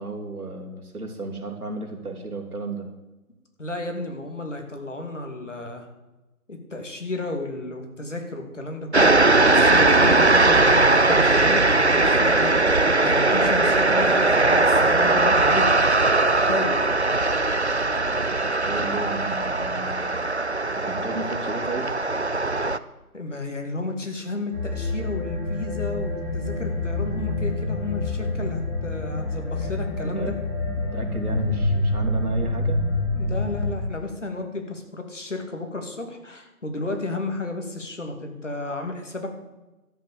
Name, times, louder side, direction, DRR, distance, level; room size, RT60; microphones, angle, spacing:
voice 1, 0.0-2.9 18.7-20.1 20.7-22.0 30.0-30.3 30.8-32.8, right 2 dB, 75° right, 2 dB, 3.5 m, -33 dB
voice 2, 3.6-5.9 6.5-15.7 16.2-16.9 23.1-30.4 33.1-39.3, left 2 dB, 55° left, 4 dB, 2.5 m, -32 dB
sound 1, 8.9-22.8, right 2 dB, 50° right, 0.5 m, -19 dB
sound 2, 24.5-33.7, left 2 dB, 5° left, 4.1 m, -27 dB
13.0 x 7.5 x 8.5 m, 1.1 s
figure-of-eight pair, 180°, 45 cm